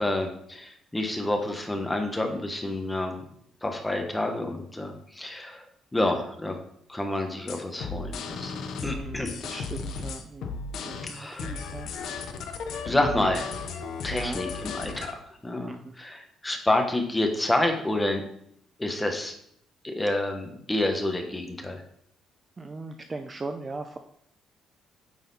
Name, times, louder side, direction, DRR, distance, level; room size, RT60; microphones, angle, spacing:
voice 1, 0.0-3.3 3.6-5.6 5.9-6.6 6.9-9.4 11.1-11.5 12.8-13.5 14.0-18.2 18.8-19.3 19.8-21.8, left 1 dB, 10° left, 4 dB, 1.0 m, -28 dB
sound 1, 7.5-15.1, left 4 dB, 70° left, 0.8 m, -35 dB
voice 2, 8.9-10.5 10.8-11.9 14.1-14.4 15.6-15.9 22.6-24.0, right 3 dB, 20° right, 7 dB, 0.4 m, -38 dB
9.0 x 4.1 x 4.0 m, 0.71 s
cardioid pair, 150°, 0 cm